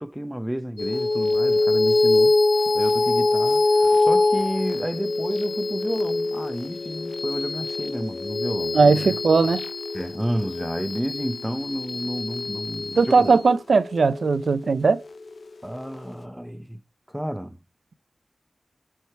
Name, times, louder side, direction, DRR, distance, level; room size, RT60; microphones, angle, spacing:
voice 1, 0.0-2.4 2.7-9.2 9.9-13.3 15.6-16.8 17.1-17.6, equal, 5° right, 0.7 m, -31 dB
sound 1, 0.8-15.5, left 3 dB, 65° left, 0.5 m, -24 dB
voice 2, 8.7-9.6 13.0-15.0, right 4 dB, 75° right, 0.5 m, -18 dB
8.3 x 4.7 x 4.5 m
wide cardioid pair, 100°, 0 cm